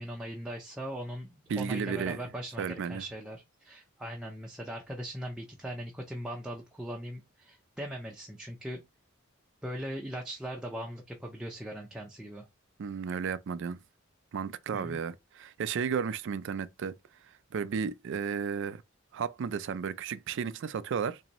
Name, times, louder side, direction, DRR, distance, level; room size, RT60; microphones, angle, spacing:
voice 1, 0.0-8.8 9.6-12.4 14.7-15.0, equal, 5° right, 0.5 m, -39 dB
voice 2, 1.5-2.2 2.6-3.0 12.8-13.8 14.3-16.9 17.5-18.8 19.1-21.2, right 6 dB, 60° right, 0.3 m, -33 dB
4.0 x 2.6 x 2.9 m
head